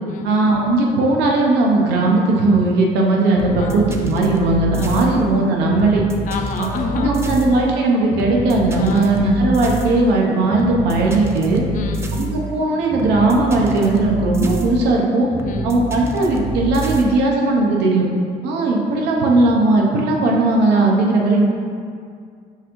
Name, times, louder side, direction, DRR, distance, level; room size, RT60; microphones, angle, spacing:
voice 1, 0.2-6.0 6.6-11.6 12.2-15.3 15.6-18.1 18.4-21.5, right 2 dB, 85° right, -1 dB, 0.7 m, -17 dB
sound 1, 3.4-17.0, right 2 dB, 15° right, 0.3 m, -28 dB
voice 2, 3.5-3.8 4.7-5.3 6.3-7.4 8.8-9.2 11.7-12.3 15.4-15.8, left 5 dB, 50° left, 4 dB, 0.4 m, -29 dB
5.6 x 2.5 x 3.0 m, 2.2 s
cardioid pair, 110°, 17 cm